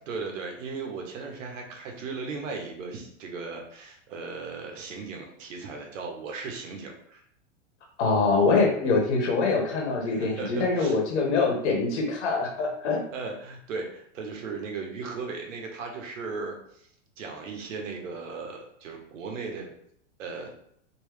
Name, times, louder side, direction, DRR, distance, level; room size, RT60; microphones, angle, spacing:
voice 1, 0.1-7.2 10.0-11.0 13.1-16.9 17.2-19.7 20.2-20.5, right 4 dB, 85° right, 2 dB, 1.1 m, -37 dB
voice 2, 8.0-13.0, left 4 dB, 65° left, 1 dB, 1.3 m, -24 dB
3.2 x 3.1 x 3.1 m, 0.69 s
supercardioid pair, 160°, 37 cm